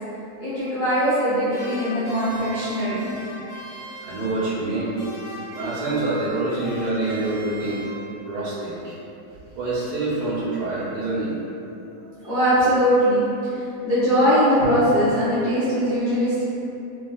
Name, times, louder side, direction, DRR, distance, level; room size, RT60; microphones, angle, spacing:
voice 1, 0.4-3.1 11.9-13.2 13.5-16.4, equal, 50° left, -14 dB, 0.6 m, -21 dB
sound 1, 1.5-4.7 5.0-8.4, right 1 dB, 45° right, 0.7 m, -38 dB
voice 2, 4.0-5.0 5.5-7.9 8.2-9.0 9.6-11.3, right 2 dB, 80° right, -9 dB, 1.4 m, -26 dB
3.3 x 2.2 x 2.3 m, 2.8 s
omnidirectional pair, 1.7 m